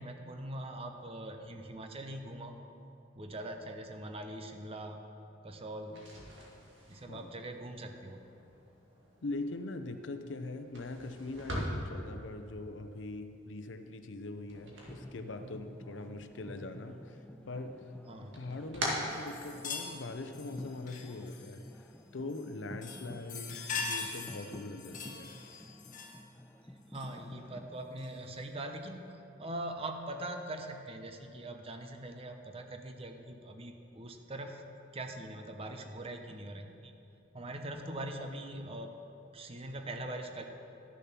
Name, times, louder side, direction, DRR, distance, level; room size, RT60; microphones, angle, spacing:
voice 1, 0.0-2.6 3.2-5.0 5.4-6.1 6.9-8.2 18.1-18.4 26.9-34.6 34.9-36.9 37.3-38.9 39.3-40.4, right 1 dB, 30° right, 5 dB, 0.8 m, -42 dB
sound 1, 5.8-15.8 16.1-17.0 17.4-20.0, equal, 75° right, 2.0 m, -43 dB
voice 2, 9.2-17.2 17.5-17.7 18.1-21.6 22.1-25.3, left 2 dB, 75° left, 8 dB, 0.6 m, -42 dB
sound 2, 14.8-27.7, left 1 dB, 5° left, 0.4 m, -51 dB
sound 3, 19.1-21.8 22.3-22.5 22.8-26.3 26.9-27.1 28.0-28.1, left 5 dB, 45° left, 1.1 m, -42 dB
12.5 x 6.8 x 5.9 m, 2.8 s
head